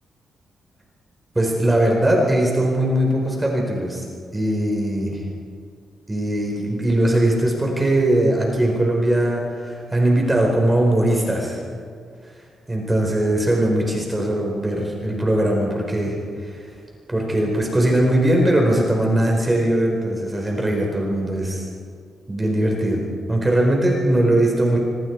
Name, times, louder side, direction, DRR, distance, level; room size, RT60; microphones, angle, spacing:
voice 1, 1.3-4.1 4.3-5.2 6.1-11.6 12.7-16.2 16.4-16.7 17.1-21.7 22.3-23.0 23.3-24.8, right 1 dB, 15° right, 0 dB, 4.7 m, -20 dB
25.0 x 25.0 x 4.8 m, 2.2 s
cardioid pair, 100°, 0 cm